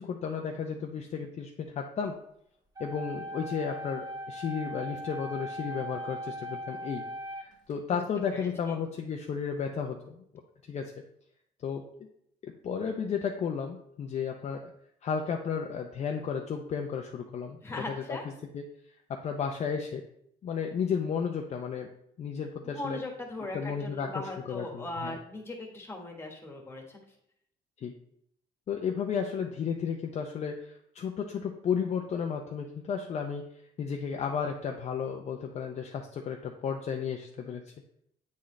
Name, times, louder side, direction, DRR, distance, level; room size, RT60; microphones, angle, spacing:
voice 1, 0.0-2.2 2.8-7.1 7.4-10.2 10.7-10.9 11.6-12.1 12.4-14.6 15.0-17.6 18.1-18.2 18.5-18.6 19.1-20.0 20.4-21.9 22.2-23.0 23.5-25.2 27.8-27.9 28.7-33.4 33.8-37.6, left 6 dB, 40° left, 3 dB, 0.5 m, -33 dB
sound 1, 2.8-7.7, equal, 20° right, 1.5 m, -39 dB
voice 2, 8.3-8.8 17.6-18.2 22.6-27.0, left 2 dB, 15° left, 1 dB, 1.4 m, -39 dB
8.4 x 4.0 x 3.2 m, 0.72 s
cardioid pair, 110°, 17 cm